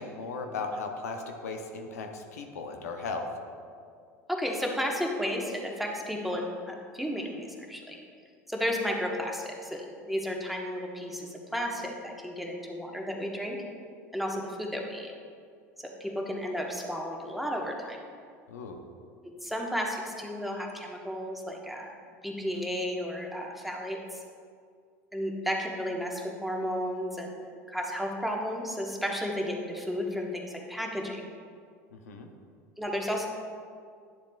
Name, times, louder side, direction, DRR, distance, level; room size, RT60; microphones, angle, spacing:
voice 1, 0.0-3.3 18.5-18.8 31.9-32.3, left 4 dB, 85° left, 4 dB, 0.7 m, -37 dB
voice 2, 4.3-8.0 8.5-13.6 14.1-15.1 15.8-18.0 19.4-21.9 22.2-24.2 25.1-27.3 27.7-31.3 32.8-33.3, equal, ahead, 0 dB, 1.2 m, -33 dB
11.0 x 7.1 x 2.4 m, 2.2 s
hypercardioid pair, 80°, 8 cm